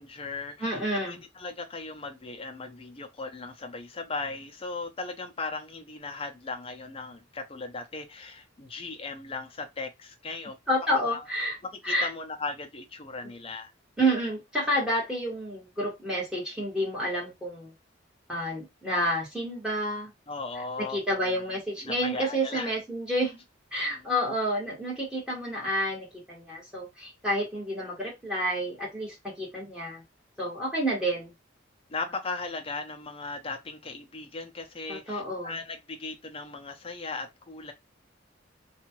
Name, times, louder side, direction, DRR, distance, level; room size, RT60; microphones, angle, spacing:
voice 1, 0.0-10.6 11.1-11.2 11.7-13.7 20.3-21.4 21.8-22.7 23.9-24.1 31.9-37.7, left 3 dB, 30° left, 0.6 m, -37 dB
voice 2, 0.6-1.2 10.7-11.6 11.8-12.1 14.0-17.7 18.3-20.1 20.8-23.4 23.7-30.0 30.4-31.3 34.9-35.5, equal, 5° right, 1.6 m, -29 dB
2.7 x 2.4 x 3.0 m
head